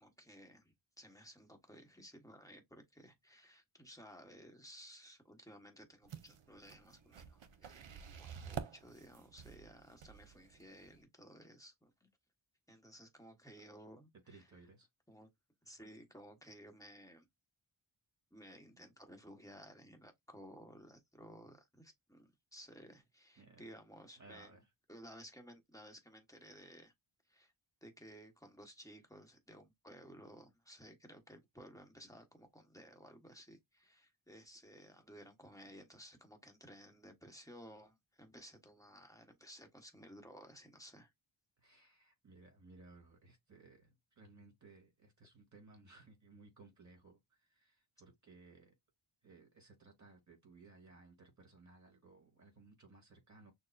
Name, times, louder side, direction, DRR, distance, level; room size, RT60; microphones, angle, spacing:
voice 1, 0.0-12.1 12.7-14.5 15.1-15.3 15.6-17.2 18.3-24.6 24.9-26.9 27.3-27.5 27.8-41.1, equal, 5° left, 1.2 m, -57 dB
sound 1, 6.0-11.0, right 8 dB, 65° right, 0.7 m, -50 dB
voice 2, 14.3-14.9 18.7-18.9 23.4-23.7 24.2-24.7 41.6-48.7 49.2-53.5, right 3 dB, 35° right, 2.7 m, -60 dB
6.3 x 2.1 x 2.5 m
wide cardioid pair, 90°, 49 cm